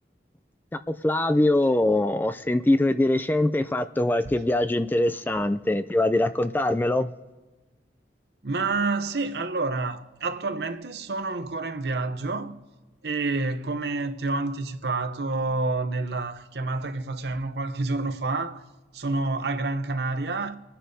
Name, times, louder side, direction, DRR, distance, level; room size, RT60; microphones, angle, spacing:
voice 1, 0.9-7.1, left 1 dB, 10° left, 0.3 m, -23 dB
voice 2, 8.4-12.6 13.0-18.7 18.9-20.5, right 3 dB, 65° right, 0.8 m, -28 dB
26.0 x 9.8 x 2.7 m
head